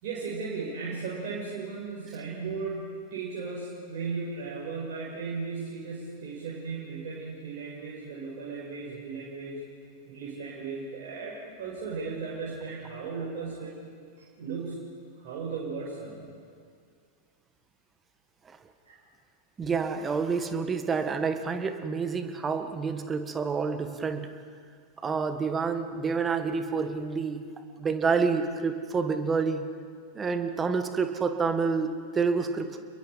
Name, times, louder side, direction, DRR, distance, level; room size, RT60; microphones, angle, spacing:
voice 1, 0.0-9.6 10.1-13.7 14.2-14.9 15.1-16.2 18.8-19.0, right 4 dB, 50° right, -6 dB, 6.3 m, -36 dB
voice 2, 19.6-24.3 25.0-27.4 27.8-29.6 30.1-32.8, right 5 dB, 20° right, 8 dB, 1.7 m, -28 dB
29.5 x 22.0 x 5.2 m, 2.1 s
figure-of-eight pair, 90°, 0 cm